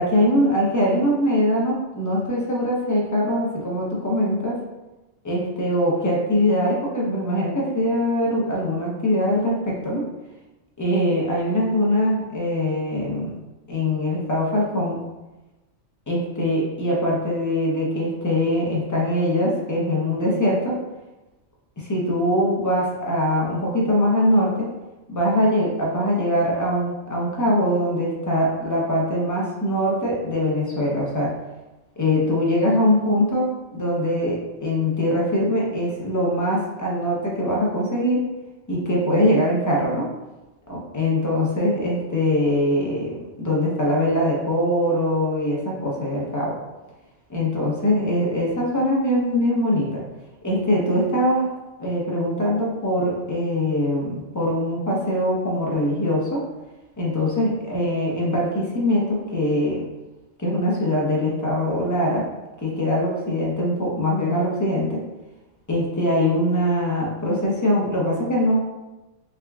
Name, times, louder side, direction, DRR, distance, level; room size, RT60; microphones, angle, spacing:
voice 1, 0.0-4.6 5.2-10.0 10.8-13.3 13.7-15.0 16.1-20.8 21.8-24.7 25.1-31.3 32.0-33.5 33.7-38.2 38.7-40.1 40.7-46.6 47.3-50.0 50.4-51.5 51.8-56.4 57.0-59.8 60.4-62.2 62.6-65.0 65.7-68.6, left 1 dB, 25° left, -4 dB, 0.4 m, -22 dB
3.5 x 3.4 x 2.3 m, 1.1 s
omnidirectional pair, 1.3 m